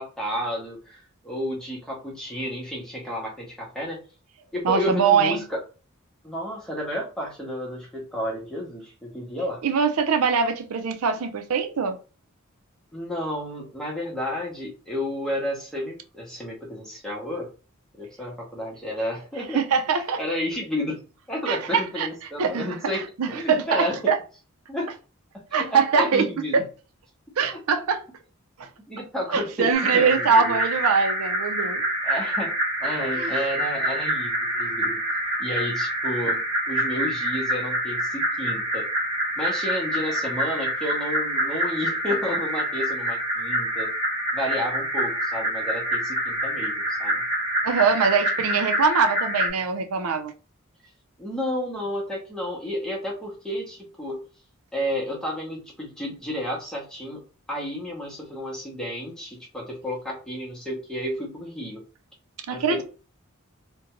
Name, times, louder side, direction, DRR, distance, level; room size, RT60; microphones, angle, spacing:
voice 1, 0.0-4.0 4.5-5.6 6.2-9.6 12.9-17.5 17.9-19.6 20.2-21.0 21.3-24.1 24.7-24.9 25.5-26.6 28.9-30.6 32.0-32.5 32.8-35.0 35.4-36.4 36.7-38.8 39.4-43.9 44.3-47.2 51.2-54.2 54.7-57.2 57.5-61.8 62.5-62.8, equal, 5° left, 0.8 m, -31 dB
voice 2, 4.6-5.4 9.6-12.0 19.5-20.2 21.5-22.1 22.4-22.8 23.2-24.2 25.5-26.3 26.5-26.6 27.4-28.0 28.6-28.7 29.3-31.8 33.1-33.3 47.6-50.3 62.5-62.8, right 5 dB, 85° right, 0.5 m, -22 dB
sound 1, 29.7-49.5, right 1 dB, 30° right, 1.1 m, -26 dB
2.5 x 2.1 x 2.9 m
head